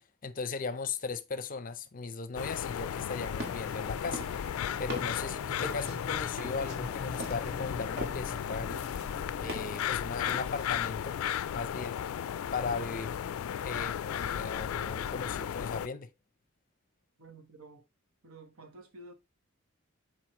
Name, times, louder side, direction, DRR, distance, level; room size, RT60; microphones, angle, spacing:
voice 1, 0.2-4.3 4.8-8.8 9.4-11.2 11.5-12.0 12.5-13.2 13.6-16.1, left 4 dB, 40° left, 0.6 m, -37 dB
sound 1, 2.3-15.9, left 9 dB, 85° left, 0.3 m, -35 dB
sound 2, 2.5-13.6, left 2 dB, 10° left, 1.0 m, -47 dB
sound 3, 2.9-3.7 4.1-8.4 8.7-9.9 10.3-10.8, equal, 50° right, 1.7 m, -42 dB
voice 2, 17.2-17.9 18.2-19.1, right 2 dB, 85° right, 1.2 m, -51 dB
7.7 x 4.2 x 3.0 m
head